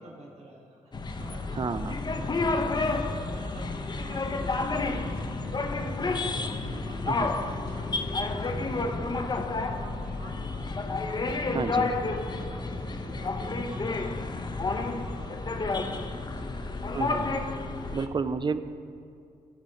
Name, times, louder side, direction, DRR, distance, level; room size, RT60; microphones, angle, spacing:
voice 1, 0.0-14.1 14.6-16.6, right 1 dB, 50° right, -3 dB, 1.9 m, -46 dB
sound 1, 0.9-18.1, left 3 dB, 30° left, 0.6 m, -30 dB
voice 2, 1.6-2.0 7.1-7.3 11.5-11.9 16.9-17.4 17.9-18.6, right 5 dB, 35° right, 13 dB, 0.4 m, -30 dB
12.5 x 5.1 x 4.3 m, 2.4 s
supercardioid pair, 55°, 14 cm